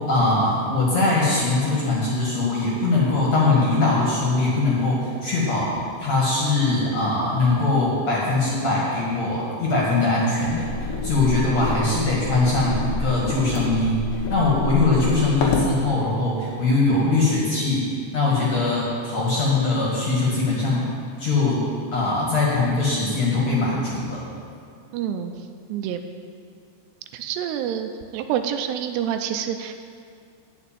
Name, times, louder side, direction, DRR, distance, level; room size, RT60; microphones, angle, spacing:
voice 1, 0.1-5.7 6.0-10.7 11.0-17.8 18.1-20.9 21.2-21.6 21.9-24.2, left 3 dB, 50° left, -5 dB, 2.6 m, -21 dB
sound 1, 10.4-15.7, left 3 dB, 65° left, 2.6 m, -28 dB
voice 2, 24.9-25.3 25.7-26.0 27.1-29.7, right 9 dB, 90° right, 7 dB, 2.7 m, -27 dB
9.7 x 6.8 x 8.9 m, 2.2 s
omnidirectional pair, 4.7 m